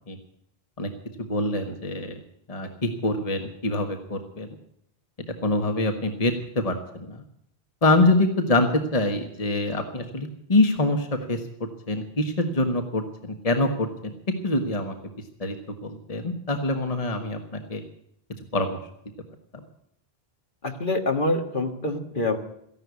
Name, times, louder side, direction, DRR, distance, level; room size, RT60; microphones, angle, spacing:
voice 1, 1.2-2.1 2.5-4.5 5.4-6.7 7.1-7.2 7.8-11.4 11.9-14.1 14.4-14.9 15.4-17.8 18.5-18.8 19.5-19.6, left 2 dB, 35° left, 5 dB, 1.5 m, -25 dB
voice 2, 20.6-22.4, left 2 dB, 55° left, 4 dB, 1.8 m, -25 dB
14.5 x 11.5 x 8.3 m, 0.73 s
omnidirectional pair, 1.0 m